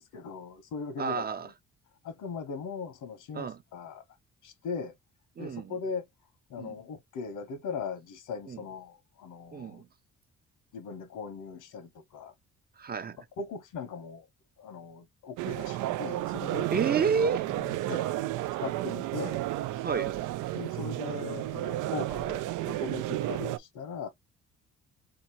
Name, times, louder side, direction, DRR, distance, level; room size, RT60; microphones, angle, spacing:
voice 1, 0.0-1.5 2.0-4.0 4.4-4.9 5.4-6.1 6.5-9.8 10.7-12.3 13.4-14.3 14.6-16.7 17.5-18.1 18.6-19.4 20.5-24.1, left 5 dB, 80° left, 1.1 m, -39 dB
voice 2, 1.0-1.5 3.3-3.6 5.4-5.7 6.6-6.7 8.5-8.6 9.5-9.9 12.8-13.2 16.7-17.4 19.8-20.2 23.2-23.3, right 5 dB, 30° right, 0.6 m, -30 dB
sound 1, 15.4-23.6, right 15 dB, 90° right, 0.5 m, -32 dB
2.9 x 2.8 x 4.4 m
cardioid pair, 90°, 30 cm